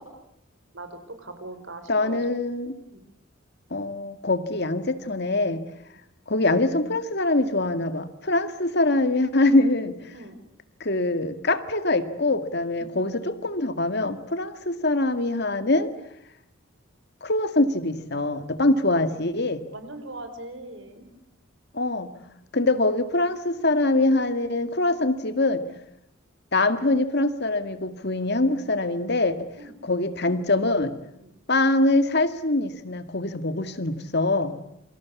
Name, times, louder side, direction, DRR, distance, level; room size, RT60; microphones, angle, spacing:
voice 1, 1.2-2.2 2.9-3.0 10.1-10.4 12.8-12.9 19.0-19.1 19.7-21.1 29.6-29.7 31.2-31.3, right 2 dB, 60° right, 9 dB, 4.6 m, -40 dB
voice 2, 1.9-2.7 3.7-5.6 6.3-10.2 10.8-15.9 17.2-19.6 21.7-22.1 22.5-25.6 26.5-29.5 29.8-30.9 31.5-34.6, left 2 dB, 55° left, 10 dB, 1.9 m, -24 dB
28.5 x 25.0 x 8.4 m, 0.77 s
head